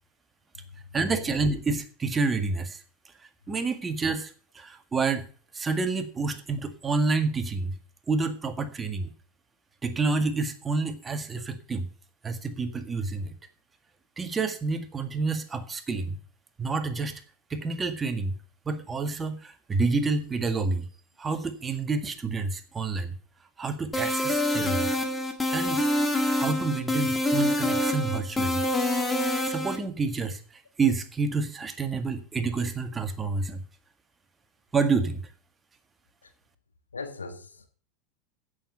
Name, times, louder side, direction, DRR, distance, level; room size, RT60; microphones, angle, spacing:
voice 1, 0.9-2.8 3.5-5.2 5.5-7.7 8.1-9.1 9.8-11.9 12.2-13.3 14.2-16.2 16.6-17.2 17.5-18.3 18.6-20.9 21.2-23.1 23.6-24.9 25.5-25.8 26.3-28.6 29.4-33.6 34.7-35.3, right 4 dB, 20° right, 1.8 m, -28 dB
sound 1, 23.9-29.8, left 1 dB, 10° left, 1.8 m, -26 dB
voice 2, 36.9-37.7, left 4 dB, 75° left, 1.6 m, -39 dB
15.5 x 6.9 x 5.6 m
figure-of-eight pair, 80°, 0 cm